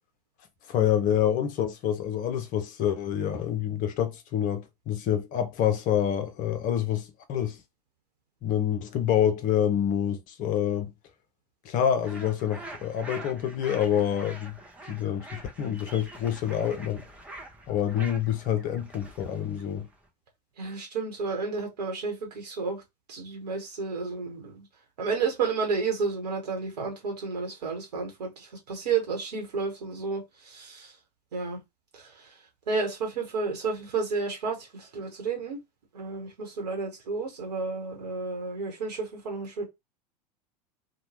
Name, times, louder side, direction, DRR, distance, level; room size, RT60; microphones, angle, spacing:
voice 1, 0.7-7.6 8.4-10.9 11.6-14.6 14.9-17.0 17.7-19.9, left 10 dB, 40° left, 0.6 m, -27 dB
sound 1, 12.0-20.1, right 2 dB, 5° right, 0.7 m, -45 dB
voice 2, 20.6-22.8 23.1-24.6 25.0-30.9 31.3-31.6 31.9-32.4 32.7-35.6 35.9-39.7, right 4 dB, 70° right, 1.0 m, -31 dB
2.9 x 2.2 x 3.0 m
figure-of-eight pair, 80°, 21 cm